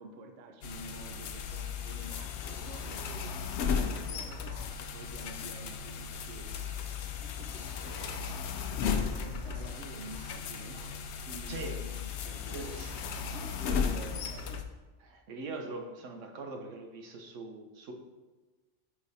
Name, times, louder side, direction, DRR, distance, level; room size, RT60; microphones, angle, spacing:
voice 1, 0.0-6.9 7.4-8.3 9.0-11.0 11.2-14.6, right 2 dB, 60° right, 4 dB, 0.8 m, -49 dB
sound 1, 0.6-14.6, left 6 dB, 70° left, 0.8 m, -36 dB
voice 2, 11.5-11.8 12.5-13.2 13.7-13.8 15.0-17.9, right 3 dB, 80° right, 4 dB, 1.1 m, -42 dB
5.0 x 4.9 x 4.0 m, 1.2 s
omnidirectional pair, 1.3 m